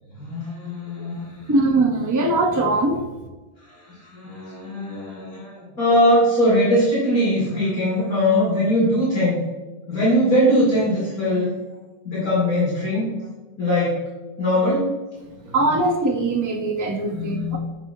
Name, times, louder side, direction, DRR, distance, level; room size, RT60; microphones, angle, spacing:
voice 1, 0.2-1.5 3.6-9.4 9.9-11.5 12.0-13.2 13.6-14.0 14.4-14.9 15.4-15.5 17.1-17.6, equal, 60° left, -8 dB, 2.9 m, -21 dB
voice 2, 1.5-3.1 15.5-17.6, right 2 dB, 25° right, 1 dB, 0.4 m, -21 dB
9.4 x 6.2 x 2.7 m, 1.2 s
omnidirectional pair, 1.8 m